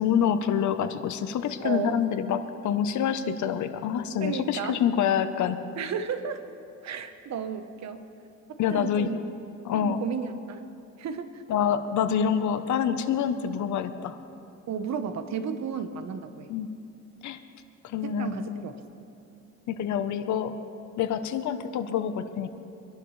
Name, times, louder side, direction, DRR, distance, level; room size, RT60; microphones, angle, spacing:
voice 1, 0.0-5.6 8.6-9.1 9.6-10.0 11.5-14.1 16.5-16.7 17.2-17.4 17.8-18.6 19.7-20.5 21.0-22.5, left 8 dB, 70° left, 10 dB, 0.9 m, -27 dB
voice 2, 1.6-1.9 4.2-4.8 5.8-6.4 6.8-8.1 8.5-9.2 9.7-10.7 11.0-11.4 14.7-16.5 18.0-18.8, right 7 dB, 60° right, 9 dB, 1.1 m, -33 dB
24.0 x 11.5 x 3.2 m, 2.6 s
cardioid pair, 90°, 30 cm